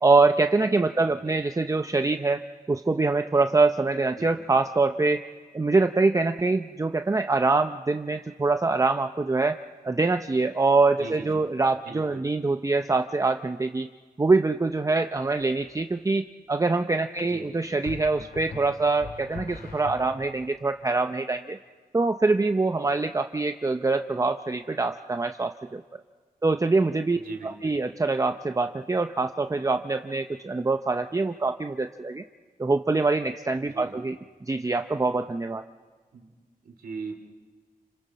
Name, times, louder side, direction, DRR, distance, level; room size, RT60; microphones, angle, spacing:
voice 1, 0.0-2.4 2.7-5.2 5.5-9.6 9.8-13.9 14.2-21.6 21.9-25.8 26.4-27.2 27.4-32.2 32.6-34.1 34.5-35.6, right 3 dB, 20° right, 7 dB, 0.6 m, -24 dB
voice 2, 11.0-11.5 11.8-12.3 17.2-17.5 27.2-27.8 33.7-33.9 36.1-36.3 36.6-37.1, right 4 dB, 90° right, 4 dB, 2.6 m, -39 dB
Effect Drum, 15.4-15.6 17.8-20.5, left 4 dB, 90° left, 2.5 m, -42 dB
29.5 x 26.5 x 4.2 m, 1.4 s
wide cardioid pair, 85°, 15 cm